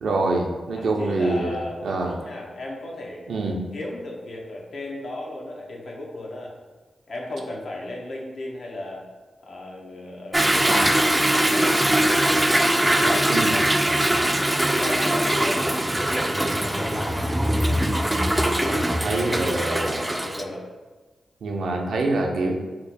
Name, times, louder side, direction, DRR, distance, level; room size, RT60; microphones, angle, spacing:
voice 1, 0.0-2.2 3.3-3.6 13.3-13.5 18.7-20.0 21.4-22.5, right 2 dB, 75° right, 1 dB, 0.5 m, -25 dB
voice 2, 0.7-3.2 3.7-6.5 7.1-9.0 9.4-15.7 16.1-17.8 18.3-20.7, left 1 dB, 70° left, -2 dB, 0.7 m, -35 dB
Toilet flush / Drip / Trickle dribble, 10.3-20.4, right 1 dB, 15° right, 0.3 m, -21 dB
2.9 x 2.1 x 4.0 m, 1.3 s
supercardioid pair, 45°, 0 cm